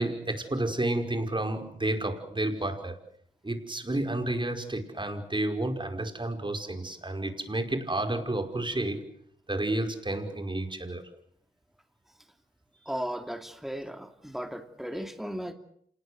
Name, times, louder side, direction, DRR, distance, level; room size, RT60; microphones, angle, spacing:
voice 1, 0.0-3.0 3.4-9.1 9.5-11.1, right 1 dB, 25° right, 5.2 m, -31 dB
voice 2, 12.9-15.5, equal, ahead, 2.8 m, -36 dB
27.5 x 19.5 x 8.1 m
cardioid pair, 50°, 20 cm